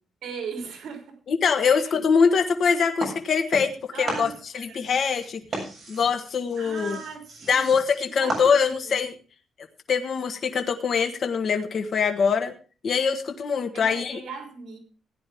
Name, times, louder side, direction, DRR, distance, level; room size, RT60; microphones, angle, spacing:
voice 1, 0.2-1.2 1.6-1.9 3.9-4.9 6.6-7.8 8.1-9.0 13.7-14.8, right 5 dB, 70° right, 3.9 m, -38 dB
voice 2, 1.3-5.4 5.9-7.0 7.5-9.1 9.9-12.5 12.8-14.2, left 6 dB, 50° left, 1.3 m, -23 dB
sound 1, 3.0-3.8 4.0-8.9, right 1 dB, 30° right, 7.2 m, -35 dB
16.5 x 9.9 x 3.5 m
cardioid pair, 155°, 0 cm